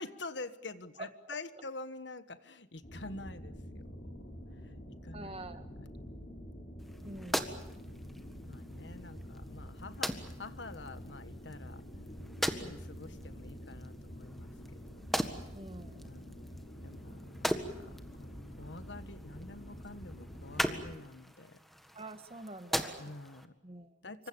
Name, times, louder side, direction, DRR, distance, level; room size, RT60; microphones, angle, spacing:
voice 1, 0.0-4.1 4.6-4.7 5.0-5.8 8.4-11.9 12.4-15.0 16.0-16.4 16.8-21.6 23.0-23.5 24.0-24.3, left 2 dB, 70° left, 12 dB, 1.5 m, -47 dB
voice 2, 1.0-1.4 5.1-5.7 7.0-7.5 12.5-12.8 15.5-16.1 21.9-23.1 23.6-24.0, right 2 dB, 30° right, 9 dB, 1.8 m, -46 dB
sound 1, 2.8-20.9, equal, 40° left, 6.7 m, -47 dB
sound 2, 6.8-23.4, equal, ahead, 1.6 m, -40 dB
27.0 x 25.0 x 7.0 m, 0.94 s
head